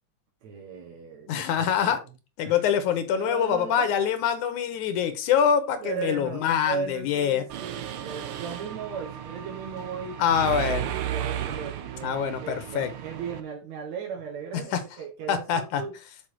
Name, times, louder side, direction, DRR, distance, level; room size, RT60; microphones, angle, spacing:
voice 1, 0.4-1.7 2.4-2.6 3.1-3.9 5.8-10.4 10.9-15.9, right 6 dB, 70° right, 0 dB, 2.5 m, -37 dB
voice 2, 1.3-2.0 2.4-7.5 10.2-10.9 12.0-12.9 14.5-14.8 15.3-15.8, left 8 dB, 80° left, 10 dB, 2.3 m, -25 dB
Mechanisms, 7.5-13.4, right 11 dB, 85° right, 1.2 m, -34 dB
6.3 x 5.3 x 4.5 m, 0.29 s
omnidirectional pair, 3.5 m